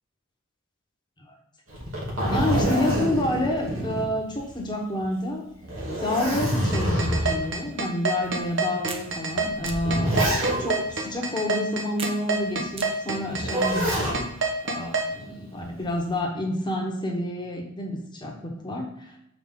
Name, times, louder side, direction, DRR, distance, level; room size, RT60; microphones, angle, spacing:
Zipper (clothing), 1.7-4.6 5.0-5.1 5.6-7.5 8.2-8.3 9.3-10.9 13.3-14.2 15.6-16.1, equal, 85° right, 2.5 m, -26 dB
voice 1, 2.3-5.5 6.0-10.2 10.6-13.9 14.6-19.2, left 1 dB, 20° left, 0 dB, 1.3 m, -29 dB
sound 1, 6.7-15.1, right 4 dB, 60° right, 1.2 m, -26 dB
sound 2, 8.9-9.1 9.7-9.8 10.4-10.9 12.0-12.2 12.8-12.9 13.5-14.0, right 2 dB, 25° right, 0.6 m, -32 dB
6.7 x 5.2 x 3.7 m, 0.79 s
head